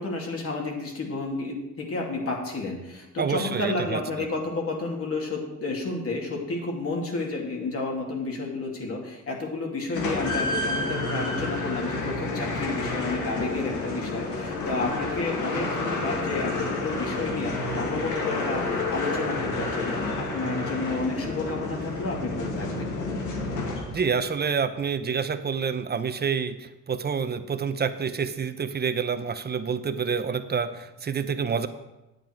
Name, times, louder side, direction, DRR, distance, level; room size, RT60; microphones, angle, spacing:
voice 1, 0.0-22.9, left 3 dB, 50° left, 0 dB, 2.6 m, -31 dB
voice 2, 3.2-4.0 23.8-31.7, right 6 dB, 35° right, 10 dB, 0.8 m, -28 dB
sound 1, 9.9-24.2, left 2 dB, 80° left, 2.0 m, -30 dB
9.2 x 8.6 x 4.6 m, 0.97 s
cardioid pair, 90°, 30 cm